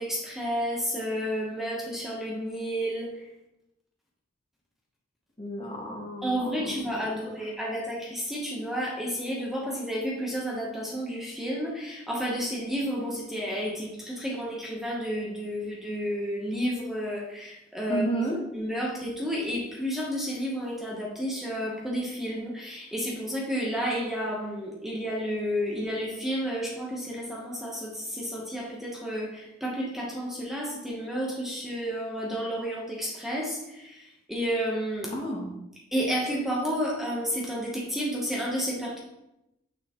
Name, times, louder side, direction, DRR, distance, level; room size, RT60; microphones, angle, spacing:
voice 1, 0.0-3.3 6.2-18.0 18.5-35.2 35.9-39.0, equal, ahead, -3 dB, 1.0 m, -31 dB
voice 2, 5.4-7.3 17.9-18.4 35.1-35.6, right 1 dB, 30° left, -1 dB, 1.1 m, -32 dB
6.5 x 5.5 x 3.0 m, 0.89 s
head